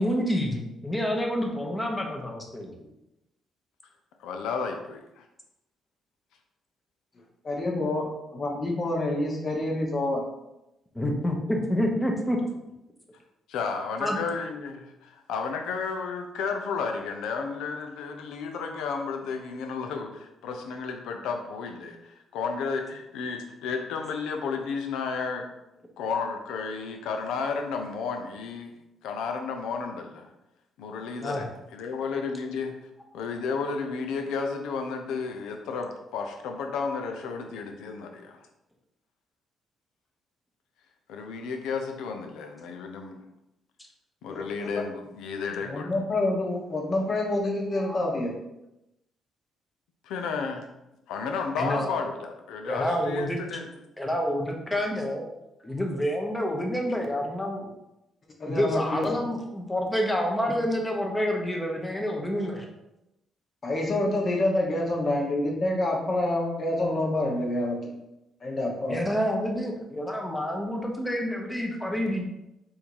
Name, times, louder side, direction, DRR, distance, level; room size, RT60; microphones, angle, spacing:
voice 1, 0.0-2.9 10.9-12.4 14.0-14.2 31.2-31.4 47.8-48.0 51.6-51.9 52.6-53.4 54.0-55.3 55.6-57.7 58.5-62.7 68.8-72.2, equal, 10° left, 1 dB, 0.9 m, -28 dB
voice 2, 4.2-5.2 13.5-25.5 26.0-28.7 29.0-30.3 30.8-32.7 33.1-38.4 41.1-43.2 44.2-45.9 50.0-50.7 51.1-53.7, left 5 dB, 90° left, 4 dB, 0.6 m, -32 dB
voice 3, 7.4-10.2 44.3-44.7 45.6-48.3 58.4-59.1 63.6-67.9 68.4-69.0, left 1 dB, 40° left, -1 dB, 1.2 m, -27 dB
3.6 x 2.7 x 4.6 m, 0.90 s
cardioid pair, 90°, 0 cm